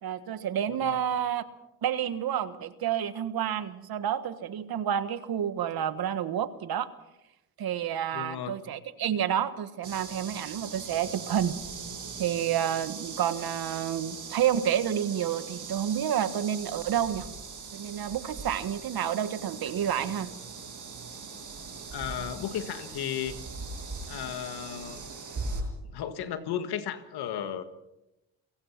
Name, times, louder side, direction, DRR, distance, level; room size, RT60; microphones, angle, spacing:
voice 1, 0.0-1.4 1.8-6.9 7.6-11.5 12.2-17.3 17.7-20.3, right 9 dB, 70° right, 1.5 m, -29 dB
voice 2, 8.1-8.6 21.9-23.4 24.0-25.0 25.9-27.6, left 9 dB, 85° left, 1.7 m, -34 dB
sound 1, 9.8-25.6, right 4 dB, 55° right, 7.5 m, -40 dB
29.0 x 16.0 x 5.9 m
cardioid pair, 70°, 38 cm